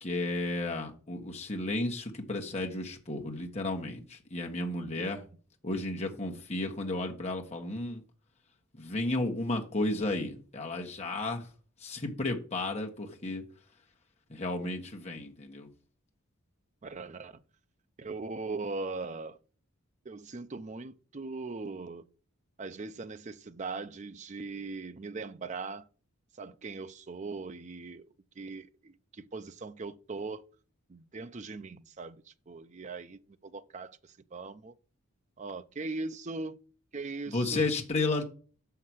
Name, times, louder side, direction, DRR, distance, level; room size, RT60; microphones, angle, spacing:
voice 1, 0.0-5.2 5.6-8.0 8.7-11.5 11.8-13.4 14.3-15.7 37.3-38.2, left 2 dB, 30° left, 1.4 m, -33 dB
voice 2, 16.8-17.4 18.0-19.4 20.1-22.1 22.6-25.8 26.4-28.1 28.4-30.4 30.9-34.0 34.3-34.7 35.4-36.6 36.9-37.7, right 3 dB, 30° right, 0.5 m, -40 dB
6.4 x 5.8 x 6.2 m
head